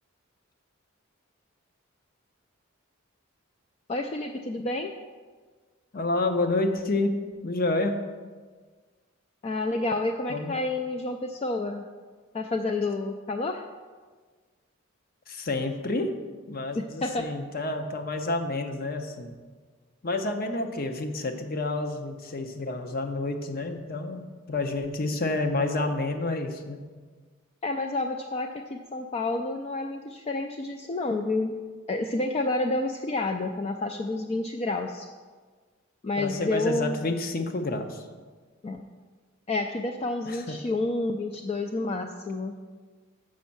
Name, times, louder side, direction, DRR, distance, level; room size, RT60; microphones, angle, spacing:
voice 1, 3.9-4.9 9.4-11.8 12.3-13.6 16.8-17.3 27.6-31.5 31.9-35.1 36.0-37.1 38.6-38.9 39.5-42.5, left 2 dB, 30° left, 4 dB, 0.3 m, -29 dB
voice 2, 5.9-7.1 7.4-8.0 10.3-10.5 15.3-16.2 16.5-19.3 20.0-24.2 24.5-26.8 36.2-38.0 40.2-40.6, left 2 dB, 45° left, 6 dB, 0.7 m, -29 dB
6.4 x 5.3 x 7.1 m, 1.5 s
head